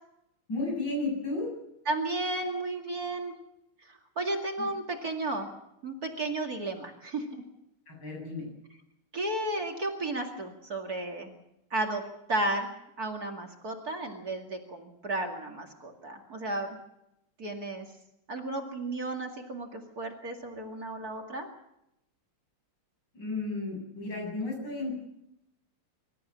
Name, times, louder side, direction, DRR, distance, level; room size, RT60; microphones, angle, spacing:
voice 1, 0.5-1.5 4.6-4.7 7.9-8.5 23.1-25.0, left 2 dB, 55° left, 0 dB, 8.6 m, -33 dB
voice 2, 1.9-3.3 3.9-5.5 5.8-7.4 9.1-11.3 11.7-12.0 12.3-12.7 13.0-16.7 17.4-17.9 18.3-21.5, right 2 dB, 45° right, 2 dB, 2.6 m, -33 dB
25.0 x 14.0 x 8.6 m, 0.84 s
omnidirectional pair, 2.3 m